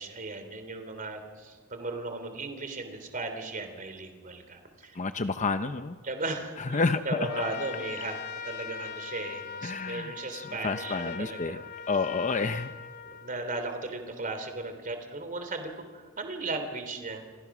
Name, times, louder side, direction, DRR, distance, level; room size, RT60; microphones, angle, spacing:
voice 1, 0.0-5.0 6.0-8.2 8.4-11.6 12.4-12.5 13.0-17.4, right 2 dB, 40° right, 7 dB, 3.3 m, -36 dB
voice 2, 4.9-6.0 6.6-7.3 9.6-11.6 11.9-12.7, left 4 dB, 35° left, 9 dB, 0.7 m, -30 dB
Trumpet, 7.2-13.7, left 6 dB, 50° left, 1.4 m, -41 dB
29.0 x 26.0 x 6.1 m, 1.5 s
head